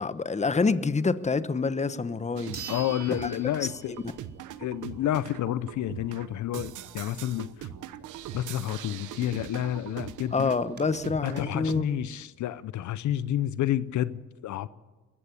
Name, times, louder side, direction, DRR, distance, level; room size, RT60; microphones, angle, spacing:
voice 1, 0.0-2.6 3.2-3.3 3.6-4.0 10.3-11.8, left 4 dB, 25° left, 1.1 m, -27 dB
sound 1, 1.7-1.8 2.5-4.3 4.7-4.8 9.4-9.5 9.7-9.8 10.4-10.8, right 5 dB, 35° right, 4.6 m, -43 dB
sound 2, 2.4-11.8, right 11 dB, 85° right, 1.1 m, -42 dB
voice 2, 2.7-4.0 4.6-7.7 8.3-10.5 11.2-14.7, left 12 dB, 70° left, 0.7 m, -30 dB
21.5 x 15.0 x 8.4 m
cardioid pair, 90°, 30 cm